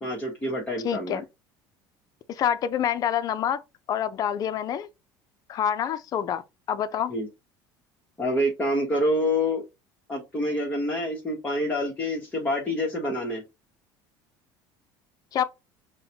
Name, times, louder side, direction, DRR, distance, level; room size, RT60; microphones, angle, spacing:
voice 1, 0.0-1.2 7.1-7.3 8.2-9.6 10.1-13.4, left 1 dB, 15° left, 1.0 m, -27 dB
voice 2, 0.8-1.2 2.3-3.6 3.9-4.9 5.5-6.4 6.7-7.1 15.3-15.4, left 9 dB, 40° left, 0.4 m, -26 dB
5.5 x 2.1 x 2.8 m
cardioid pair, 135°, 10 cm